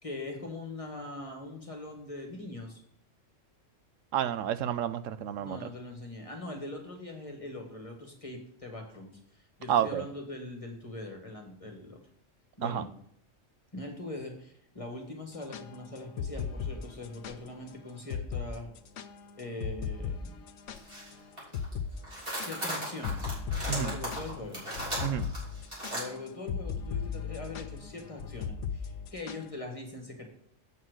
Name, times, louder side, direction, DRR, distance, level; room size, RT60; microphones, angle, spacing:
voice 1, 0.0-2.8 5.4-12.0 12.6-12.9 13.7-18.7 19.4-20.4 22.4-23.3 23.6-24.6 25.9-30.3, left 2 dB, 25° left, 2 dB, 1.7 m, -42 dB
voice 2, 4.1-5.6 9.7-10.0 12.6-12.8 23.7-24.0 25.0-25.3, right 10 dB, 85° right, 13 dB, 1.0 m, -30 dB
sound 1, 15.3-17.4 17.7-17.8 18.1-18.5 18.8-21.1 21.5-21.9 22.2-29.5, left 7 dB, 75° left, 1.0 m, -37 dB
sound 2, 20.8-21.1 21.4-21.7 22.0-26.0, right 1 dB, 45° right, 3.7 m, -36 dB
8.0 x 5.8 x 6.3 m, 0.67 s
omnidirectional pair, 1.3 m